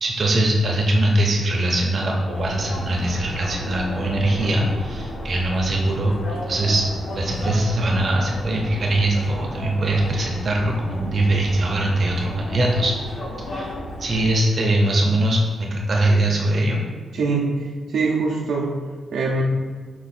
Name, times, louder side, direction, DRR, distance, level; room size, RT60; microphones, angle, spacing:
voice 1, 0.0-6.9 7.1-12.9 13.4-13.7 14.0-16.8, right 1 dB, 45° right, -1 dB, 0.7 m, -21 dB
sound 1, 2.3-14.3, left 1 dB, 75° left, 1.0 m, -33 dB
voice 2, 17.1-18.7 19.1-19.4, right 3 dB, 80° right, -2 dB, 0.7 m, -23 dB
4.7 x 2.5 x 4.2 m, 1.4 s
cardioid pair, 110°, 0 cm